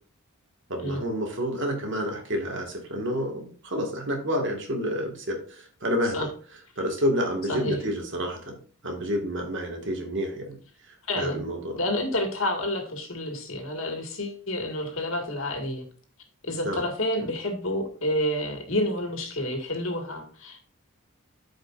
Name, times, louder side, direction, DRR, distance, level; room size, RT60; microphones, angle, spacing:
voice 1, 0.7-6.3 6.8-8.6 8.8-10.6 11.2-11.8 16.6-16.8, equal, 60° right, 2 dB, 2.0 m, -29 dB
voice 2, 11.1-11.4 11.8-15.8 16.4-20.6, left 1 dB, 70° left, 3 dB, 2.0 m, -29 dB
13.0 x 5.2 x 2.6 m, 0.42 s
head